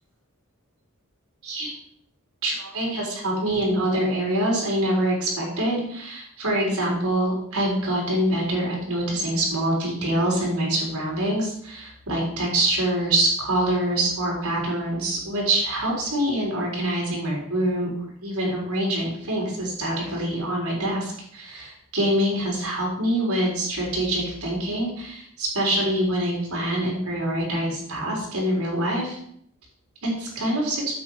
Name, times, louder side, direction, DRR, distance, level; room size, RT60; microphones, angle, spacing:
voice 1, 2.4-17.9 18.2-29.2 30.0-30.8, right 1 dB, 90° right, -3 dB, 4.3 m, -25 dB
9.4 x 7.4 x 4.8 m, 0.67 s
head